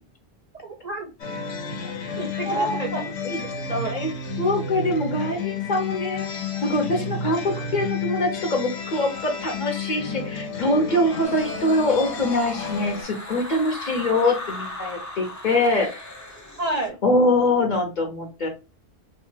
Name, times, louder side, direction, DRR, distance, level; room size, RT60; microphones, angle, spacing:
voice 1, 0.6-1.1 2.2-3.1 3.6-4.1 16.6-17.0, right 2 dB, 50° right, 2 dB, 0.5 m, -30 dB
sound 1, 1.2-13.0, left 4 dB, 85° left, 1.0 m, -31 dB
voice 2, 2.5-3.4 3.9-4.1 4.4-6.3 6.6-15.9 17.0-18.5, left 1 dB, 50° left, 2 dB, 0.7 m, -24 dB
sound 2, 11.2-16.9, left 1 dB, 30° left, 0.3 m, -37 dB
2.8 x 2.2 x 3.1 m, 0.29 s
omnidirectional pair, 1.1 m